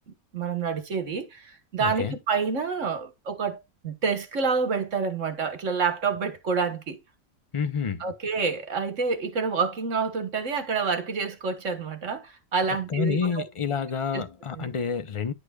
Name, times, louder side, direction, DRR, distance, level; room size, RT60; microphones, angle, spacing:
voice 1, 0.1-7.0 8.0-13.5 14.1-14.2 14.6-14.7, right 5 dB, 55° right, 1.7 m, -28 dB
voice 2, 1.8-2.2 7.5-8.1 12.7-15.3, left 6 dB, 50° left, 0.3 m, -29 dB
10.5 x 6.4 x 2.3 m
omnidirectional pair, 1.6 m